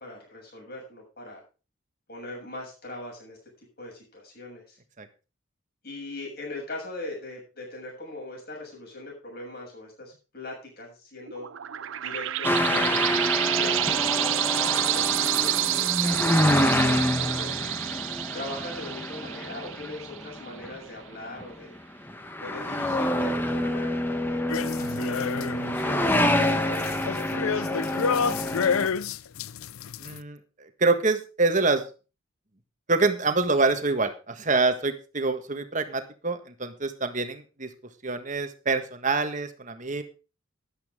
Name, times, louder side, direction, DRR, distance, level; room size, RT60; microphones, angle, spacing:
voice 1, 0.0-1.4 2.1-3.4 3.8-4.8 5.8-11.5 12.0-17.7 18.3-21.7 22.4-25.2 25.6-28.9, left 2 dB, 45° left, -1 dB, 7.0 m, -40 dB
sound 1, 11.3-20.5, right 15 dB, 65° right, 0.5 m, -28 dB
sound 2, 12.4-20.8 21.4-21.8 22.1-28.9, left 1 dB, 10° left, 1.1 m, -27 dB
sound 3, 24.5-25.8 26.2-30.2, left 6 dB, 85° left, 0.5 m, -29 dB
voice 2, 30.0-31.8 32.9-37.7 38.0-40.0, right 3 dB, 35° right, 8 dB, 1.5 m, -26 dB
13.0 x 11.5 x 3.6 m, 0.33 s
head